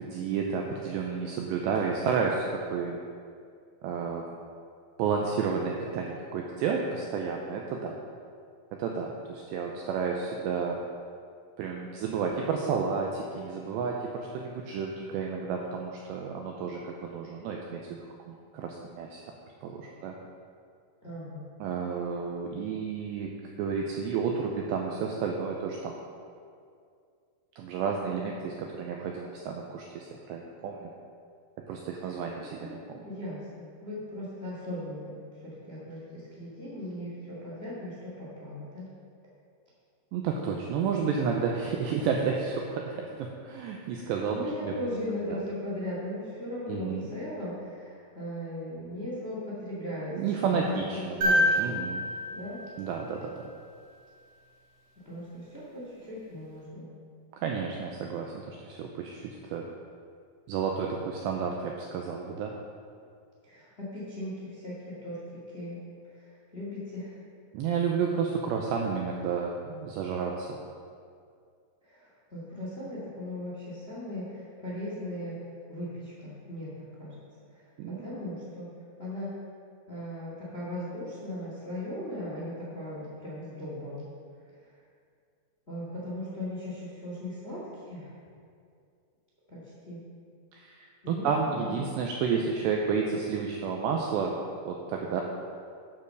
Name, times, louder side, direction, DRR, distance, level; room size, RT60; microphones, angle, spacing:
voice 1, 0.0-3.0 3.8-4.2 5.0-8.0 8.7-10.8 11.6-19.2 19.6-20.2 21.6-26.0 27.6-30.9 31.7-33.0 40.1-44.7 45.3-45.4 46.7-47.1 50.1-52.0 52.8-53.3 57.3-59.7 60.5-62.5 67.5-70.6 77.8-78.1 90.5-94.3 94.7-95.2, right 6 dB, 90° right, 1 dB, 2.4 m, -31 dB
voice 2, 21.0-21.4 32.4-32.7 33.0-35.1 35.4-38.9 44.0-50.1 50.4-51.8 52.3-52.6 55.0-56.9 63.4-65.8 66.5-67.2 71.8-77.1 77.5-77.6 77.9-78.7 79.0-79.4 79.9-84.0 85.7-88.1 89.5-90.0 91.0-91.8, left 1 dB, 50° left, -7 dB, 0.7 m, -38 dB
sound 1, 51.2-53.5 55.5-55.6, equal, 45° right, 3.3 m, -28 dB
10.5 x 6.8 x 6.6 m, 2.3 s
omnidirectional pair, 5.9 m